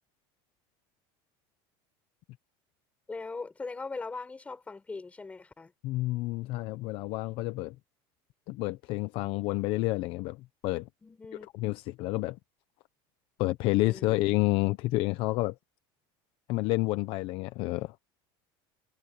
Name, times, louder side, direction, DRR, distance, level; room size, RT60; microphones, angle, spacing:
voice 1, 3.1-5.7 11.0-11.5 13.8-14.2, left 3 dB, 10° left, 5.8 m, -40 dB
voice 2, 5.8-7.8 8.5-10.9 11.6-12.4 13.4-15.6 16.5-18.0, left 19 dB, 50° left, 0.8 m, -29 dB
cardioid pair, 160°, 12 cm